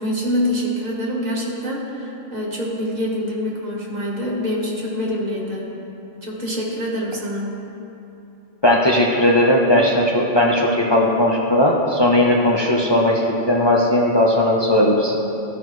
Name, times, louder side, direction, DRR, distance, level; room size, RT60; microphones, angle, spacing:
voice 1, 0.0-5.7 6.2-7.5, equal, 35° right, -4 dB, 1.5 m, -25 dB
voice 2, 8.6-15.4, left 1 dB, 35° left, -3 dB, 0.4 m, -17 dB
13.5 x 5.7 x 3.1 m, 2.9 s
omnidirectional pair, 1.3 m